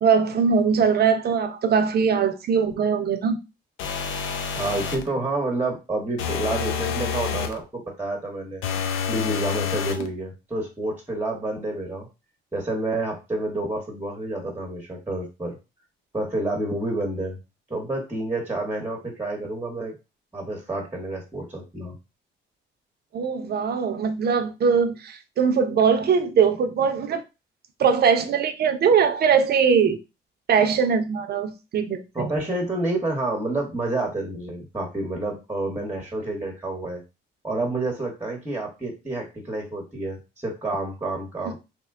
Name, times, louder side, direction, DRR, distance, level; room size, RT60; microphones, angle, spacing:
voice 1, 0.0-3.4 23.1-27.2 27.8-30.0 30.5-32.3, right 6 dB, 55° right, 0.6 m, -21 dB
sound 1, 3.8-5.1 6.2-7.6 8.6-10.1, left 6 dB, 85° left, 0.5 m, -28 dB
voice 2, 4.5-8.6 9.1-12.1 12.5-15.6 16.1-17.4 17.7-19.9 20.3-21.9 32.1-37.0 37.4-41.6, right 2 dB, 10° right, 1.0 m, -29 dB
2.9 x 2.1 x 3.5 m
cardioid pair, 90°, 20 cm